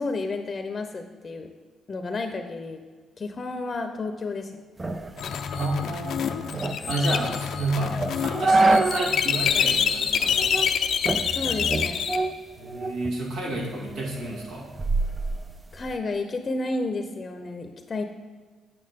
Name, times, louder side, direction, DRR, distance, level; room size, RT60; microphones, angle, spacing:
voice 1, 0.0-1.5 1.9-2.8 3.2-4.5 11.3-12.0 15.7-18.0, left 3 dB, 35° left, 6 dB, 0.7 m, -31 dB
sound 1, 4.8-9.3 9.6-9.7 10.3-10.7 11.1-13.1 13.5-16.0, right 2 dB, 20° right, 0.5 m, -27 dB
sound 2, 5.2-12.2, left 7 dB, 70° left, 0.6 m, -26 dB
voice 2, 5.5-10.6 12.6-14.7, right 1 dB, 75° right, -3 dB, 2.3 m, -31 dB
8.6 x 8.3 x 3.7 m, 1.4 s
cardioid pair, 90°, 0 cm